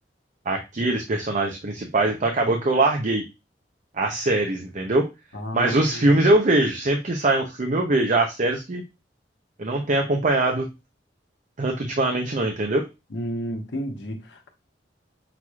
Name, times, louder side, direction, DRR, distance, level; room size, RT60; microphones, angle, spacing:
voice 1, 0.5-3.2 4.0-5.1 5.5-8.8 9.6-10.7 11.6-12.9, right 2 dB, 45° right, 0.6 m, -22 dB
voice 2, 5.3-6.2 13.1-14.5, equal, 75° left, 1.0 m, -32 dB
5.8 x 3.0 x 2.3 m
head